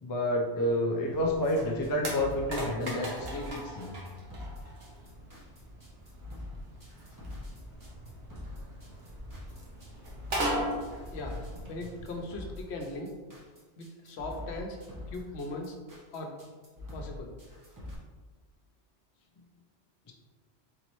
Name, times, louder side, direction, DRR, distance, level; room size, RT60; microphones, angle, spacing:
voice 1, 0.0-4.0 20.1-20.2, left 1 dB, 30° left, 0 dB, 0.4 m, -29 dB
sound 1, 1.1-12.2, right 1 dB, 65° right, 1.1 m, -39 dB
sound 2, 1.8-17.9, left 2 dB, 20° right, 0.8 m, -44 dB
voice 2, 11.1-13.1 13.8-14.8 15.1-15.7 16.1-16.3 16.9-17.3, left 2 dB, 80° left, 3 dB, 0.9 m, -39 dB
4.0 x 3.8 x 3.0 m, 1.4 s
omnidirectional pair, 1.1 m